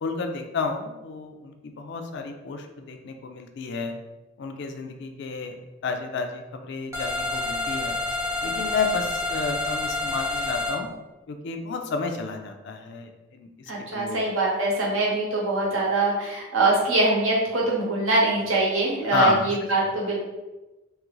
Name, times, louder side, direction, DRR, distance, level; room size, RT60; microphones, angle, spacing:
voice 1, 0.0-4.0 4.4-5.6 5.8-7.9 8.4-10.9 11.3-13.5 13.9-14.2 19.1-19.5, left 4 dB, 55° left, 5 dB, 0.3 m, -31 dB
sound 1, 6.9-10.8, left 2 dB, 15° right, 0.6 m, -28 dB
voice 2, 13.7-20.1, right 2 dB, 70° right, -3 dB, 0.9 m, -23 dB
2.9 x 2.4 x 3.0 m, 1.1 s
head